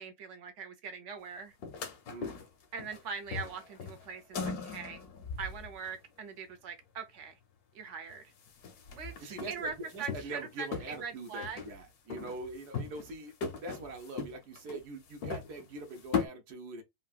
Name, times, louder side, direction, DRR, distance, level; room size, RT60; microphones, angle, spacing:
voice 1, 0.0-1.6 2.7-5.0 5.4-7.4 7.7-8.3 8.9-11.6, right 5 dB, 60° right, 1.0 m, -42 dB
sound 1, 1.6-3.0 3.3-6.0 8.1-8.2 8.4-10.5 10.7-11.8 12.1-13.1 13.4-16.3, left 5 dB, 75° left, 1.3 m, -39 dB
voice 2, 2.1-2.4 9.2-16.8, right 2 dB, 90° right, 1.5 m, -43 dB
3.7 x 2.2 x 2.4 m
omnidirectional pair, 1.6 m